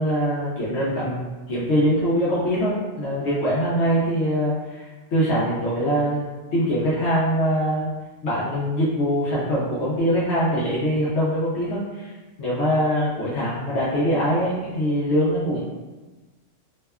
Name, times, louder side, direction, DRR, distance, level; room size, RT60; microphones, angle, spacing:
voice 1, 0.0-7.9 8.2-12.1 12.4-15.6, equal, 65° left, -8 dB, 0.8 m, -23 dB
2.7 x 2.1 x 2.3 m, 1.2 s
omnidirectional pair, 1.3 m